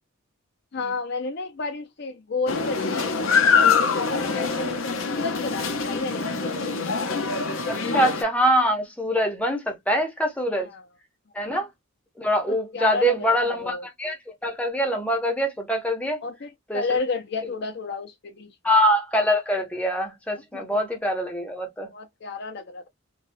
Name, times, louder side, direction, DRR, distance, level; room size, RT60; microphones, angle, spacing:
voice 1, 0.7-3.2 3.6-6.6 10.6-10.8 12.5-13.9 16.2-18.7 20.5-20.8 21.8-22.9, left 4 dB, 55° left, 0.5 m, -32 dB
sound 1, 2.5-8.2, left 5 dB, 80° left, 0.7 m, -24 dB
voice 2, 7.7-10.7 11.3-11.7 12.2-14.2 14.4-16.2 16.7-16.8 18.6-21.9, equal, 5° left, 0.7 m, -24 dB
3.4 x 2.2 x 2.6 m
head